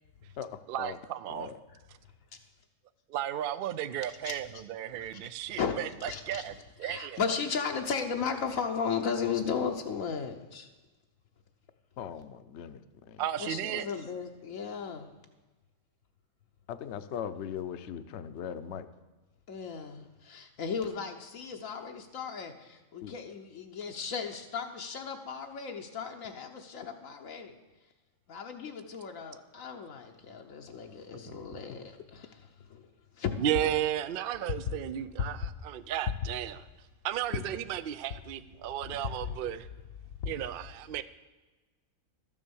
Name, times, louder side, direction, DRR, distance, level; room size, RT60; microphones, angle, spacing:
voice 1, 0.7-1.5 3.1-6.5 6.8-7.2 13.2-13.9 31.3-31.6 33.4-36.6 37.0-39.7 40.3-41.0, right 11 dB, 65° right, 0.5 m, -34 dB
voice 2, 3.9-4.4 5.0-5.3 5.6-5.7 6.0-6.4 6.8-10.7 13.4-15.1 19.5-27.5 28.3-32.9 33.2-33.7 34.7-34.8 38.8-39.1, left 6 dB, 80° left, 1.2 m, -35 dB
voice 3, 12.0-13.2 16.7-18.9 23.0-23.1, left 8 dB, 65° left, 0.9 m, -39 dB
12.5 x 7.3 x 7.0 m
omnidirectional pair, 1.4 m